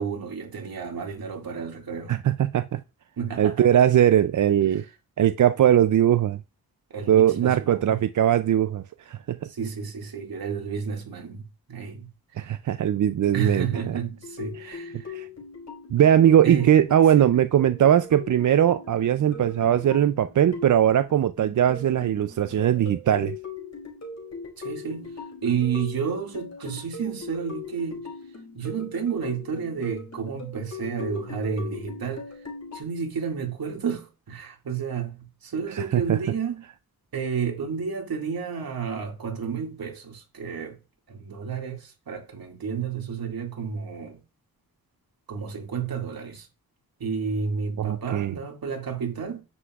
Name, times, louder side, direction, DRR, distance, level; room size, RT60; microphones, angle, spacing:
voice 1, 0.0-2.1 3.2-3.6 4.7-4.9 6.9-8.0 9.4-11.4 11.7-12.1 13.3-15.2 16.4-16.8 17.2-17.3 24.6-25.1 25.4-28.1 28.5-32.3 32.7-36.7 37.1-40.8 41.1-44.2 45.3-46.5 47.0-49.4, right 6 dB, 70° right, 2.2 m, -31 dB
voice 2, 2.1-2.8 3.4-4.8 5.2-6.4 7.1-9.4 12.4-14.0 15.1-15.3 15.9-23.4 35.7-36.2 47.8-48.3, right 10 dB, 55° right, 0.5 m, -20 dB
sound 1, 13.5-32.8, left 4 dB, 45° left, 5.1 m, -40 dB
9.7 x 7.7 x 2.4 m
wide cardioid pair, 95°, 37 cm